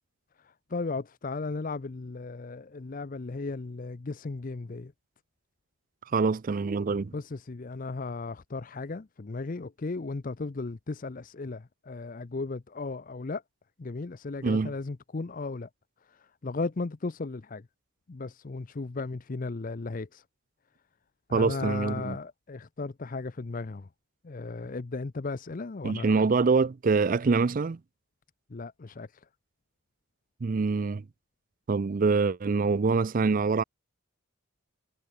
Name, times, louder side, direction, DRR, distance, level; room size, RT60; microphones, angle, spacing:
voice 1, 0.4-4.9 7.1-13.4 13.8-15.7 16.1-17.6 18.1-20.2 21.3-23.9 24.2-26.3 28.5-29.1, left 3 dB, 40° left, 0.5 m, -36 dB
voice 2, 6.1-7.1 14.4-14.7 21.3-22.2 25.8-27.8 30.4-31.0 31.7-33.6, right 4 dB, 40° right, 0.4 m, -25 dB
head